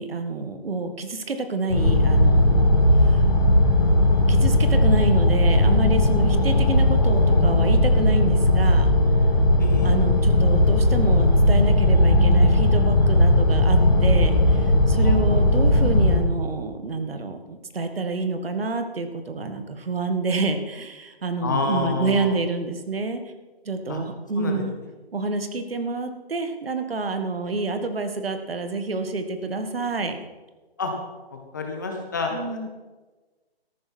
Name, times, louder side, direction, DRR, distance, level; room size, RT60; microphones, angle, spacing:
voice 1, 0.0-2.7 3.0-3.2 4.3-8.9 9.8-23.2 23.6-24.7 25.1-30.2 32.3-32.7, right 3 dB, 65° right, 8 dB, 1.7 m, -28 dB
sound 1, 1.7-16.2, left 1 dB, 45° left, 4.6 m, -18 dB
voice 2, 9.6-9.9 15.0-15.3 21.4-22.3 23.9-24.0 24.4-24.6 30.8-30.9 31.5-32.7, left 4 dB, 20° left, 2 dB, 1.0 m, -28 dB
14.0 x 11.5 x 4.4 m, 1.2 s
hypercardioid pair, 175°, 32 cm